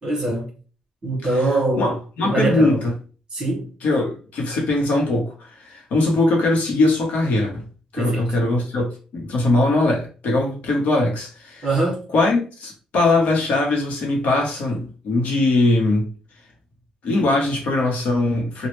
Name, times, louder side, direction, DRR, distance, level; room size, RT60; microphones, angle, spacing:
voice 1, 0.0-0.5 1.0-1.9 2.2-2.8 3.3-3.7 8.0-8.2 11.6-12.0, right 2 dB, 30° right, 1.6 m, -22 dB
voice 2, 1.8-2.9 3.8-7.6 7.9-11.7 12.1-16.1 17.0-18.7, left 2 dB, 65° left, 1.0 m, -21 dB
3.1 x 2.3 x 3.1 m
cardioid pair, 160°, 3 cm